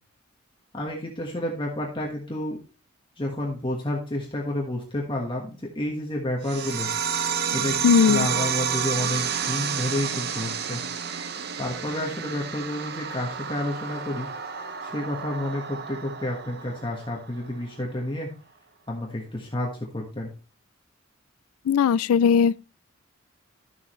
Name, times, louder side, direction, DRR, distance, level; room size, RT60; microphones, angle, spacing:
voice 1, 0.7-2.6 3.2-6.9 7.5-10.8 11.6-14.3 14.8-18.3 18.9-20.3, left 1 dB, 25° left, 1.4 m, -30 dB
sound 1, 6.4-17.5, right 7 dB, 50° right, 0.7 m, -30 dB
voice 2, 7.8-8.3 21.7-22.6, left 7 dB, 90° left, 0.3 m, -18 dB
12.0 x 7.2 x 3.1 m
head